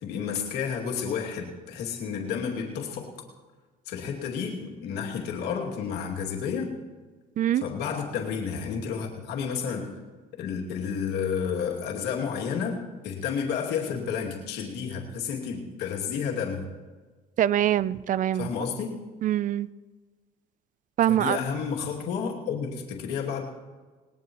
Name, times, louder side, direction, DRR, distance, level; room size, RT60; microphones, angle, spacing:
voice 1, 0.0-3.1 3.9-6.7 7.5-9.9 10.4-16.7 18.3-19.0 21.1-23.4, left 6 dB, 85° left, -1 dB, 2.6 m, -31 dB
voice 2, 17.4-18.5 19.2-19.7 21.0-21.4, right 11 dB, 50° right, 18 dB, 0.5 m, -23 dB
20.0 x 19.0 x 3.1 m, 1.4 s
cardioid pair, 110°, 17 cm